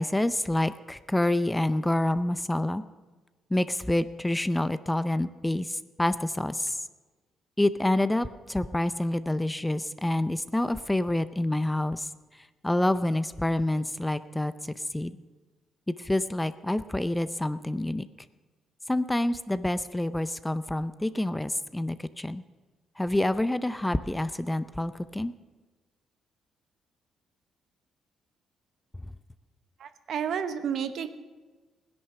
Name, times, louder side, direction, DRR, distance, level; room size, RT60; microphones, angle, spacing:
voice 1, 0.0-2.8 3.5-6.8 7.6-12.1 12.6-15.2 15.9-18.1 18.9-22.4 23.0-25.3, left 1 dB, 10° left, 14 dB, 0.5 m, -27 dB
voice 2, 29.8-31.1, right 8 dB, 70° right, 10 dB, 0.9 m, -31 dB
16.5 x 10.5 x 6.6 m, 1.3 s
cardioid pair, 90°, 0 cm